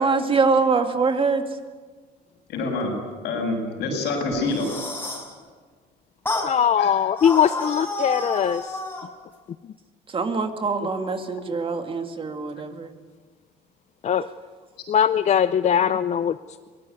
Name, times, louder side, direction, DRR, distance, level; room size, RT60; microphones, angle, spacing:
voice 1, 0.0-1.4 10.1-12.9, right 4 dB, 30° right, 6 dB, 2.3 m, -23 dB
voice 2, 2.5-2.9 3.2-4.7 6.8-7.0, left 3 dB, 80° left, 2 dB, 7.4 m, -26 dB
sound 1, 4.3-5.3 6.3-6.5 7.2-9.1, left 2 dB, 10° left, 5.3 m, -30 dB
voice 3, 6.4-8.8 14.0-14.2 14.9-16.3, left 8 dB, 45° left, 13 dB, 0.6 m, -21 dB
22.5 x 18.5 x 9.5 m, 1.5 s
cardioid pair, 110°, 17 cm